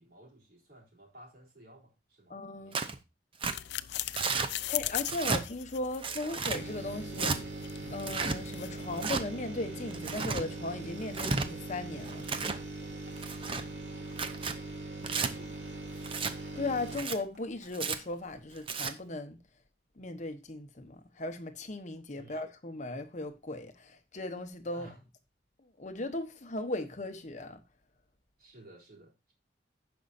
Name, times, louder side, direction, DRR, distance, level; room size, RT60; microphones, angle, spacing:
voice 1, 0.0-3.0 4.3-4.7 14.2-14.5 22.2-22.4 24.7-25.0 28.4-29.3, right 1 dB, 55° right, 3.8 m, -56 dB
voice 2, 2.3-2.8 4.7-7.6 7.9-12.4 16.5-19.4 20.0-24.9 25.8-27.6, left 2 dB, 40° left, 1.0 m, -37 dB
Tearing, 2.7-3.0 3.4-3.6 4.2-4.5 5.0-5.4 6.0-6.6 7.1-7.4 8.0-8.4 9.0-9.2 9.9-10.4 11.0-11.5 12.1-12.6 13.2-13.6 14.1-14.6 15.0-15.3 16.0-16.3 16.9-17.2 17.7-18.0 18.6-18.9, right 4 dB, 30° right, 0.7 m, -32 dB
sound 1, 3.4-9.0, left 14 dB, 70° left, 0.4 m, -40 dB
sound 2, 6.5-18.1 18.5-18.6, right 2 dB, 75° right, 2.7 m, -41 dB
16.5 x 5.4 x 2.6 m
head